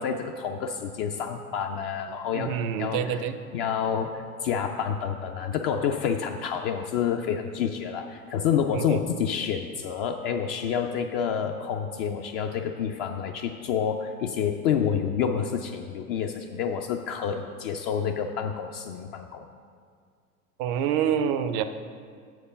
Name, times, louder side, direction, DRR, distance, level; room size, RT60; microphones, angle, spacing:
voice 1, 0.0-3.2 3.5-19.4, left 7 dB, 40° left, 4 dB, 0.4 m, -28 dB
voice 2, 2.3-3.4 8.7-9.0 20.6-21.6, right 8 dB, 40° right, 11 dB, 0.4 m, -27 dB
6.6 x 4.6 x 6.5 m, 2.1 s
hypercardioid pair, 90°, 45 cm